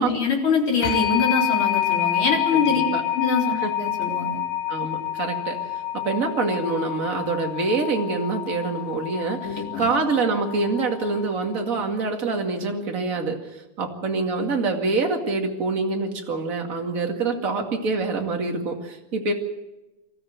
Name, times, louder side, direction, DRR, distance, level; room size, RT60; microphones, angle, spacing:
voice 1, 0.0-2.8 3.1-4.4 9.4-9.9, left 4 dB, 35° left, -1 dB, 4.4 m, -24 dB
sound 1, 0.8-11.4, left 12 dB, 60° left, 2.9 m, -28 dB
voice 2, 2.5-3.0 3.6-3.7 4.7-5.6 5.9-13.4 13.8-19.3, right 3 dB, 25° right, 2 dB, 2.0 m, -25 dB
25.5 x 14.0 x 7.9 m, 1.0 s
omnidirectional pair, 4.3 m